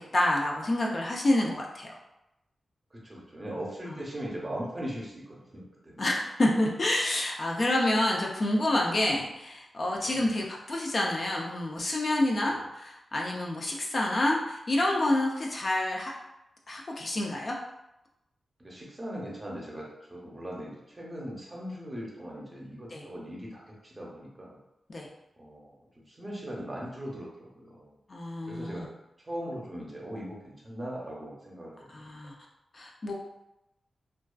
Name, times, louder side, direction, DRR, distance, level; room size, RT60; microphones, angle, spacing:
voice 1, 0.1-1.9 6.0-16.1 16.7-17.6 22.9-23.0 24.9-25.1 28.1-28.9 31.9-32.3 32.7-33.1, left 1 dB, 45° left, -1 dB, 0.4 m, -28 dB
voice 2, 2.9-6.0 10.0-10.3 12.4-12.6 18.6-24.6 25.4-25.8 26.1-27.9 28.4-28.9 29.2-32.0, equal, 25° right, -4 dB, 0.6 m, -39 dB
2.3 x 2.2 x 2.3 m, 0.89 s
wide cardioid pair, 100°, 0 cm